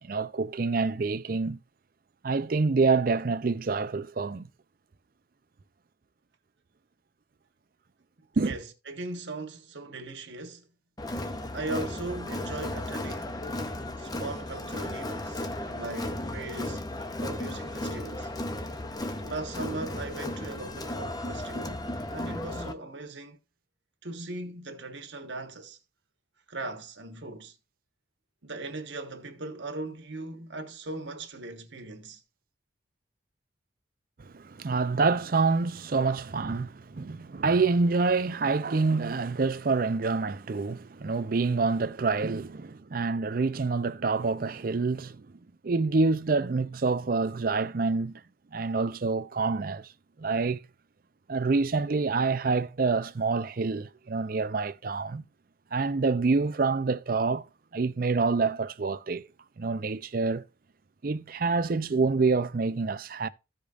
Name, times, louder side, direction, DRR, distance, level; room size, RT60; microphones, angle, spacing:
voice 1, 0.0-1.6 2.2-4.5 8.4-8.6 34.2-45.3 45.6-48.2 48.5-49.9 50.2-50.6 51.3-55.2 55.7-57.5 57.7-59.3 59.6-60.4 61.0-63.3, right 4 dB, 50° right, 0.5 m, -27 dB
voice 2, 8.5-10.7 11.5-13.4 14.0-16.8 17.2-18.3 19.2-23.4 24.0-25.8 26.5-27.5 28.4-32.2, right 2 dB, 70° right, 1.3 m, -39 dB
Crowd, 11.0-22.7, left 1 dB, 20° left, 0.6 m, -35 dB
15.0 x 5.1 x 2.5 m
head